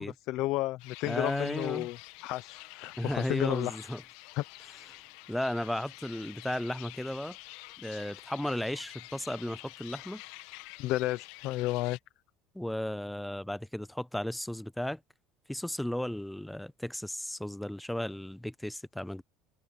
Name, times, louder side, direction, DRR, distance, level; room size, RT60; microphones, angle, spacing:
voice 1, 0.0-3.8 4.4-4.5 10.8-12.0, left 17 dB, 60° left, 0.8 m, -32 dB
sound 1, 0.8-12.0, left 20 dB, 75° left, 1.4 m, -48 dB
voice 2, 1.0-1.9 3.0-4.0 5.3-7.4 7.8-10.2 12.5-15.0 15.5-19.2, left 1 dB, 5° left, 0.5 m, -34 dB
cardioid pair, 145°, 0 cm